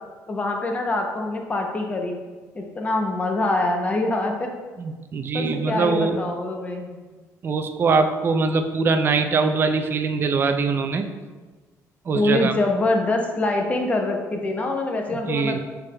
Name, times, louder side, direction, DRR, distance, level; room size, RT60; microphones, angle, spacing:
voice 1, 0.3-2.3 2.5-4.5 5.3-6.9 12.1-15.6, left 2 dB, 25° left, 3 dB, 0.6 m, -24 dB
voice 2, 4.8-6.2 7.4-11.1 12.1-12.5 15.3-15.6, right 4 dB, 35° right, 6 dB, 0.4 m, -22 dB
6.6 x 3.5 x 2.2 m, 1.3 s
cardioid pair, 115°, 6 cm